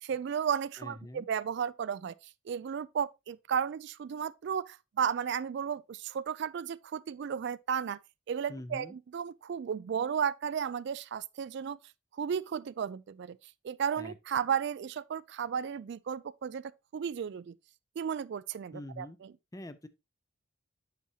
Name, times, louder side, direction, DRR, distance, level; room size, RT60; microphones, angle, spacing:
voice 1, 0.0-2.1 2.5-8.0 8.3-11.8 12.1-13.4 13.6-17.5 18.0-19.3, right 7 dB, 55° right, 0.3 m, -34 dB
voice 2, 0.8-1.3 8.5-9.0 14.0-14.1 18.7-19.2 19.5-19.9, left 1 dB, 15° left, 0.5 m, -44 dB
8.3 x 6.1 x 2.7 m
head